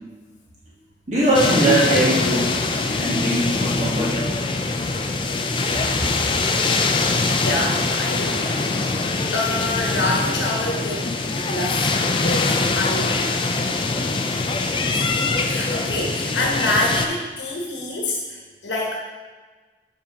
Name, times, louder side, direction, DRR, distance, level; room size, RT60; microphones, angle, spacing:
voice 1, 1.1-2.5 2.9-4.2, right 1 dB, 40° right, -7 dB, 1.4 m, -20 dB
sound 1, 1.3-17.1, left 3 dB, 30° left, 0.4 m, -23 dB
voice 2, 7.4-8.5 8.9-13.4 14.7-18.9, left 2 dB, 85° left, -1 dB, 1.1 m, -27 dB
5.6 x 4.9 x 5.2 m, 1.4 s
head